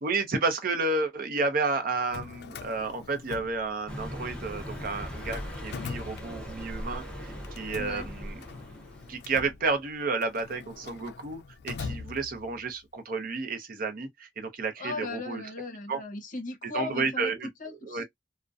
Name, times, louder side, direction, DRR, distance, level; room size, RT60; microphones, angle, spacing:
voice 1, 0.0-8.4 9.1-15.4 15.9-16.0 16.6-17.5 17.8-18.0, right 3 dB, 55° right, 0.6 m, -31 dB
Drawer open or close, 1.9-4.1 4.4-6.8 7.4-12.7, left 5 dB, 65° left, 0.3 m, -43 dB
Car passing by, 3.9-9.4, equal, 5° left, 0.6 m, -39 dB
voice 2, 7.8-8.1 14.8-17.3 17.6-18.0, left 3 dB, 50° left, 0.7 m, -37 dB
2.5 x 2.1 x 2.3 m
head